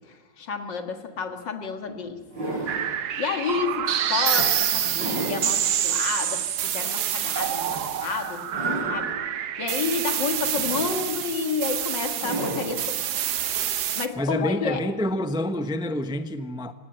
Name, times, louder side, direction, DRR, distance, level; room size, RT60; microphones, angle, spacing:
voice 1, 0.4-2.2 2.7-9.1 9.6-13.0 13.3-14.8, left 5 dB, 80° left, 2.6 m, -30 dB
sound 1, 1.2-1.3 1.9-2.9 3.6-3.7 4.4-5.6 6.0-6.1 7.7-8.1 8.4-9.2 10.4-11.3 12.2-12.8 14.2-14.3, right 2 dB, 85° right, 6.9 m, -33 dB
sound 2, 2.7-14.1, right 10 dB, 65° right, 1.4 m, -27 dB
voice 2, 14.2-16.7, left 1 dB, 5° right, 0.6 m, -27 dB
26.5 x 18.0 x 9.1 m
omnidirectional pair, 1.9 m